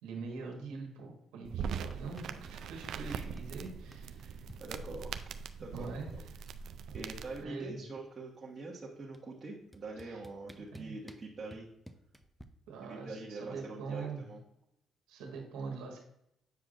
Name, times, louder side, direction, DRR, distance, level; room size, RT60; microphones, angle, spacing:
voice 1, 0.0-4.4 5.7-6.3 7.2-7.8 10.0-10.2 10.7-11.0 12.7-14.2 15.1-16.0, right 4 dB, 90° right, 1 dB, 1.4 m, -43 dB
sound 1, 1.4-7.4, right 7 dB, 75° right, 0.4 m, -42 dB
sound 2, 1.6-2.6 2.8-4.6 5.9-6.0 6.2-6.6 6.9-8.3 9.1-9.2 9.7-12.4, equal, 5° left, 0.6 m, -53 dB
voice 2, 4.6-5.2 5.6-6.3 6.9-11.7 12.8-14.4, right 3 dB, 35° right, -5 dB, 1.3 m, -44 dB
7.9 x 4.8 x 2.5 m, 0.78 s
supercardioid pair, 70°, 0 cm